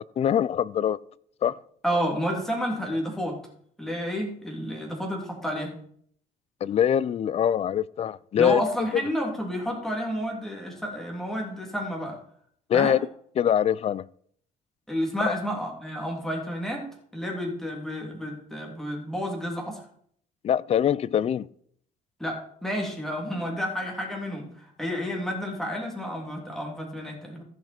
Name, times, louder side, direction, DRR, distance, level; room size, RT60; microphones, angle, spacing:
voice 1, 0.2-1.0 1.4-1.5 6.6-8.6 12.7-13.0 13.4-14.0 15.2-15.3 20.4-21.5, left 9 dB, 40° left, 0.4 m, -23 dB
voice 2, 1.8-3.4 3.8-5.7 8.3-12.2 12.7-13.0 14.9-16.8 17.1-19.8 22.2-27.4, equal, ahead, 3.1 m, -30 dB
15.0 x 6.1 x 4.4 m
cardioid pair, 110°, 17 cm